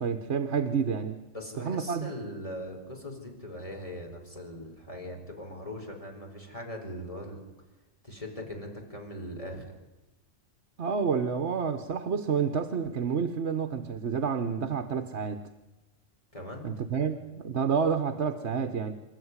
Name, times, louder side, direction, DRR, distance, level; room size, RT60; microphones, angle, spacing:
voice 1, 0.0-1.2 1.6-2.1 10.8-15.5 16.6-18.9, right 6 dB, 60° right, 8 dB, 1.4 m, -29 dB
voice 2, 1.3-7.4 8.0-9.7 16.3-16.9, left 1 dB, 25° left, 1 dB, 4.6 m, -40 dB
27.5 x 13.0 x 9.7 m, 1.1 s
omnidirectional pair, 1.3 m